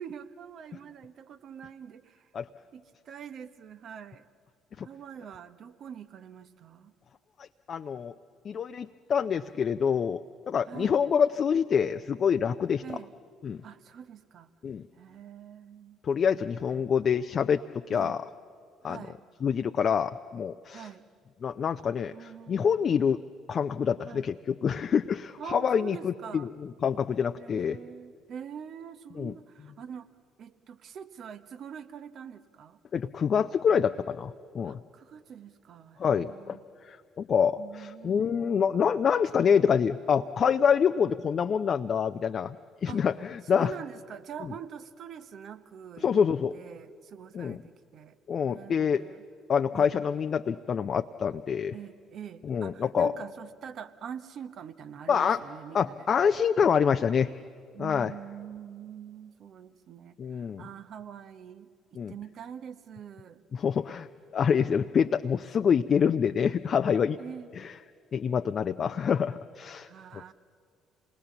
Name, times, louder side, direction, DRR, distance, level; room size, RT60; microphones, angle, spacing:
voice 1, 0.0-2.3 2.7-4.3 4.8-6.9 10.6-11.0 12.8-13.1 13.6-14.5 14.9-16.0 16.7-16.9 17.9-18.2 18.8-19.2 20.7-21.1 22.1-22.9 24.0-24.3 25.4-26.5 27.4-32.8 34.6-36.6 37.6-38.8 42.9-43.1 43.4-46.1 46.5-48.2 48.4-49.2 49.7-50.0 51.7-56.1 57.7-63.4 67.1-67.5 68.8-69.0 69.9-70.3, right 8 dB, 55° right, 11 dB, 1.0 m, -44 dB
voice 2, 7.4-8.1 8.4-10.2 10.5-12.8 13.4-13.6 14.6-14.8 16.0-18.3 18.8-19.0 19.4-20.9 21.4-23.2 23.5-26.5 26.8-27.8 29.2-29.3 32.9-34.8 36.0-36.6 36.9-42.6 42.8-43.7 46.0-46.5 47.3-47.6 48.3-49.0 49.5-51.7 52.4-53.1 55.1-55.4 55.7-57.3 57.8-58.1 60.2-60.6 62.0-62.1 63.5-64.1 64.3-67.2 67.6-67.7 68.1-69.9, left 7 dB, 50° left, 8 dB, 0.5 m, -26 dB
27.0 x 20.0 x 7.2 m, 2.2 s
hypercardioid pair, 55°, 0 cm